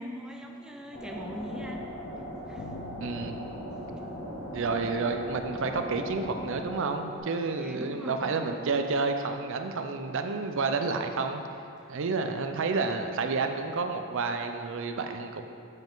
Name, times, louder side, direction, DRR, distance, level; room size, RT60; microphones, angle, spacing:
voice 1, 0.0-1.9 2.5-2.7 7.5-8.4 11.8-11.9, equal, 5° right, 1 dB, 0.5 m, -40 dB
sound 1, 0.9-7.2, equal, 45° left, 1.2 m, -39 dB
Bass guitar, 2.6-5.7, left 4 dB, 65° left, 0.3 m, -50 dB
voice 2, 3.0-3.4 4.5-11.4 11.9-15.4, right 4 dB, 60° right, 6 dB, 0.5 m, -30 dB
7.5 x 7.1 x 3.9 m, 2.5 s
head